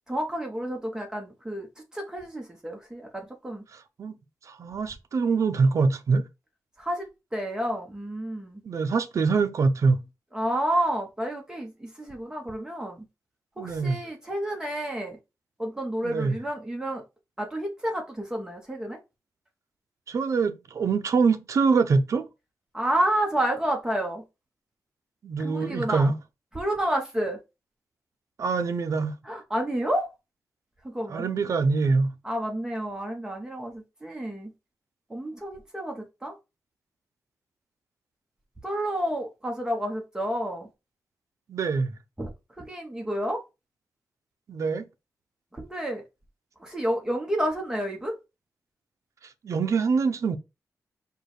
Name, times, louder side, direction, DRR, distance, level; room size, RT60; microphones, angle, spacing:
voice 1, 0.1-3.6 6.8-8.6 10.3-13.0 13.6-15.2 15.6-17.0 17.4-19.0 22.7-24.2 25.4-26.1 26.5-27.4 29.2-30.1 30.8-31.2 32.2-34.5 35.1-36.3 38.6-40.7 42.2-42.3 42.6-43.4 45.5-46.0 46.6-48.2, right 1 dB, 10° right, 1.0 m, -30 dB
voice 2, 3.7-4.2 4.5-6.3 8.6-10.0 13.6-14.0 16.0-16.3 20.1-22.3 25.2-26.2 28.4-29.1 31.1-32.1 41.5-41.9 44.5-44.9 49.4-50.4, right 4 dB, 60° right, 0.6 m, -24 dB
4.6 x 2.3 x 4.8 m
wide cardioid pair, 160°, 6 cm